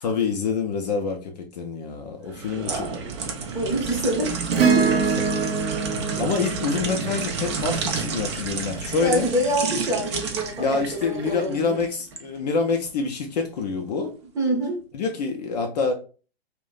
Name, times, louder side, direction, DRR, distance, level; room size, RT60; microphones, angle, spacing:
voice 1, 0.0-2.9 6.2-9.3 10.6-14.1 14.9-15.9, left 5 dB, 40° left, 0.5 m, -26 dB
sound 1, 2.3-12.3 12.7-12.9, right 5 dB, 30° right, 0.4 m, -31 dB
voice 2, 2.6-3.1 3.5-4.4 4.7-5.0 9.0-11.8 14.3-14.8, right 1 dB, 10° right, 0.7 m, -26 dB
Acoustic guitar / Strum, 4.5-9.1 11.0-11.1, right 5 dB, 65° right, 0.8 m, -25 dB
2.3 x 2.1 x 3.7 m
figure-of-eight pair, 115°, 31 cm